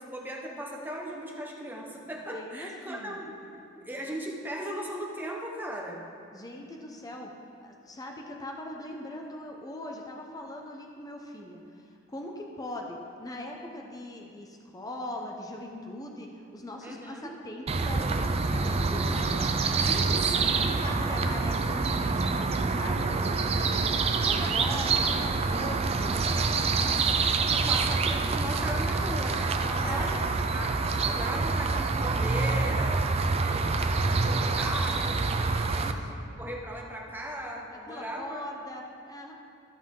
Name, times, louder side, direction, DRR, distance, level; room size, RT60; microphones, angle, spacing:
voice 1, 0.0-3.3 3.8-6.0 16.8-17.3 19.8-20.9 27.5-30.8 31.0-33.0 33.3-38.4, equal, 10° right, -1 dB, 0.9 m, -38 dB
voice 2, 2.3-3.2 3.6-3.7 6.3-7.3 7.6-19.5 20.1-27.2 27.7-27.8 29.5-30.2 35.8-36.1 37.7-39.3, left 1 dB, 20° left, 1 dB, 0.7 m, -41 dB
sound 1, 17.7-35.9, right 4 dB, 30° right, 0.4 m, -26 dB
14.0 x 5.6 x 3.7 m, 2.5 s
head